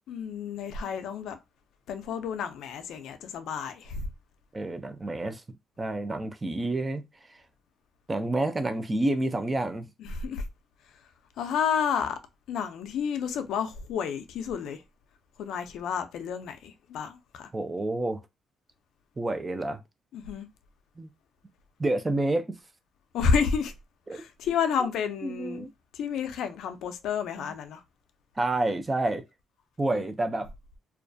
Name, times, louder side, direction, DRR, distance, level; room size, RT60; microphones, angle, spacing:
voice 1, 0.1-1.4 1.9-4.1 10.0-10.4 11.4-12.2 12.5-14.8 15.4-17.5 20.1-20.5 23.1-23.7 24.1-25.7 25.9-27.8 29.9-30.0, left 6 dB, 80° left, 0.4 m, -30 dB
voice 2, 4.5-5.4 5.8-7.4 8.1-9.8 17.5-18.2 19.2-19.8 21.0-21.1 21.8-22.6 24.1-24.2 25.2-25.7 27.4-27.5 28.4-29.2 29.8-30.5, right 2 dB, 20° right, 0.4 m, -29 dB
2.3 x 2.1 x 2.5 m
cardioid pair, 90°, 0 cm